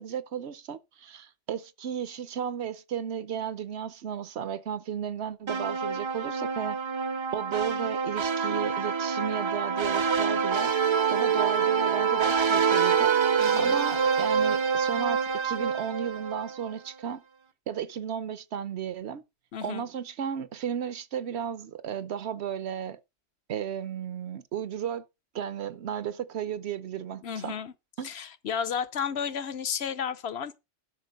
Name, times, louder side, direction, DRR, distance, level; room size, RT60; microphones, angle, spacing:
voice 1, 0.0-6.8 7.3-10.7 11.1-13.1 13.6-17.2 17.7-19.2 19.6-23.0 23.5-25.1 25.3-27.6 28.0-28.1, right 8 dB, 70° right, 1.0 m, -34 dB
sound 1, 5.5-16.7, right 6 dB, 35° right, 0.5 m, -26 dB
voice 2, 13.4-13.8 19.5-19.8 27.2-27.7 28.0-30.6, left 7 dB, 65° left, 1.0 m, -32 dB
12.0 x 5.8 x 5.2 m
omnidirectional pair, 1.2 m